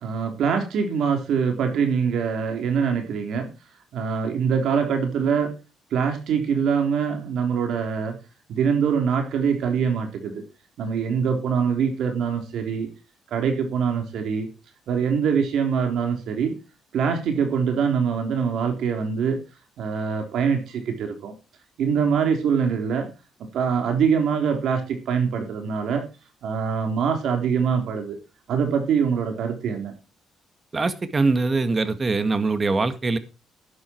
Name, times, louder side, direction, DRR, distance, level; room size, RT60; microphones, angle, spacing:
voice 1, 0.0-3.5 3.9-5.5 5.9-8.1 8.5-10.4 10.8-12.9 13.3-14.5 14.9-16.5 16.9-19.4 19.8-21.3 21.8-23.1 23.5-26.0 26.4-28.2 28.5-29.9, right 6 dB, 70° right, 4 dB, 3.6 m, -24 dB
voice 2, 30.7-33.2, right 3 dB, 30° right, 12 dB, 1.8 m, -22 dB
12.5 x 9.9 x 4.6 m, 0.30 s
cardioid pair, 100°, 0 cm